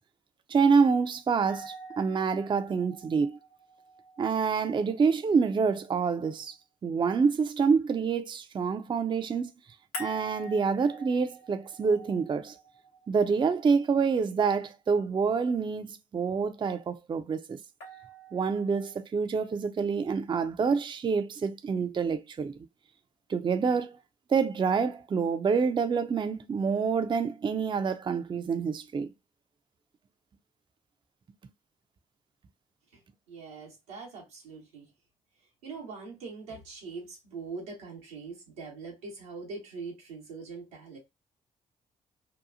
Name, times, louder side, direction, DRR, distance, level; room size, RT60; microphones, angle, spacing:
voice 1, 0.5-3.4 4.2-6.6 6.8-9.5 10.0-12.6 13.1-17.6 18.3-22.5 23.3-24.0 24.3-29.1, right 5 dB, 25° right, 0.4 m, -27 dB
sound 1, 1.5-6.4 9.9-14.0 17.8-19.0, equal, 90° left, 0.9 m, -47 dB
voice 2, 33.3-34.9 35.6-41.0, right 4 dB, 90° right, 0.9 m, -42 dB
2.8 x 2.3 x 2.5 m
hypercardioid pair, 40°, 18 cm